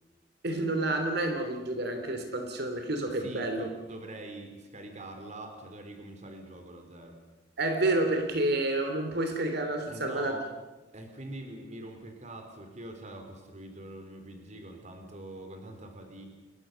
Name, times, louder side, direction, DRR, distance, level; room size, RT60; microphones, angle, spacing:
voice 1, 0.4-3.6 7.6-10.4, right 2 dB, 60° right, 6 dB, 3.1 m, -29 dB
voice 2, 3.1-7.2 9.9-10.4 10.9-16.3, right 1 dB, 40° right, 5 dB, 4.1 m, -44 dB
29.0 x 21.5 x 7.0 m, 1.1 s
head